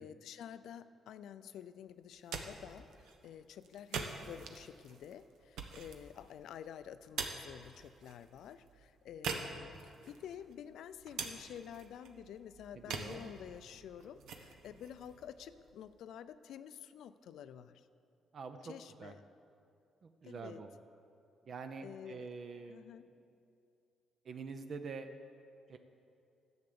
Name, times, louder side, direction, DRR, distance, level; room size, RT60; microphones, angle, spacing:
voice 1, 0.0-17.9 18.6-19.2 20.2-20.6 21.8-22.3 22.7-23.1, left 9 dB, 80° left, 13 dB, 0.4 m, -50 dB
sound 1, 2.0-16.0, right 5 dB, 90° right, 0.9 m, -46 dB
voice 2, 12.7-13.3 18.3-18.7 19.0-19.1 20.0-20.7 21.5-22.9 24.2-25.1 25.7-25.8, right 4 dB, 50° right, 7 dB, 0.6 m, -46 dB
10.5 x 7.9 x 6.8 m, 2.5 s
cardioid pair, 105°, 0 cm